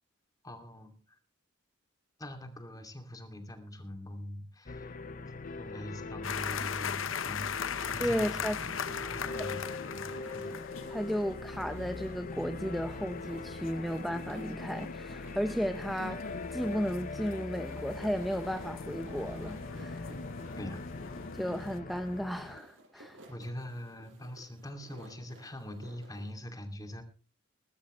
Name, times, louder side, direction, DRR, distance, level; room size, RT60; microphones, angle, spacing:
voice 1, 0.4-0.9 2.2-5.0 5.6-8.4 9.0-9.6 9.9-10.5 20.6-20.8 22.9-27.0, left 1 dB, 20° left, 5 dB, 2.6 m, -43 dB
sound 1, 4.7-22.6, left 3 dB, 45° left, 0.7 m, -42 dB
sound 2, 6.2-21.8, left 6 dB, 85° left, 0.8 m, -40 dB
voice 2, 8.0-8.6 9.3-9.5 10.9-16.2 16.5-20.1 21.3-23.2, equal, ahead, 8 dB, 0.7 m, -34 dB
sound 3, 8.0-26.3, right 1 dB, 75° right, 6.5 m, -55 dB
21.5 x 12.5 x 3.2 m, 0.36 s
head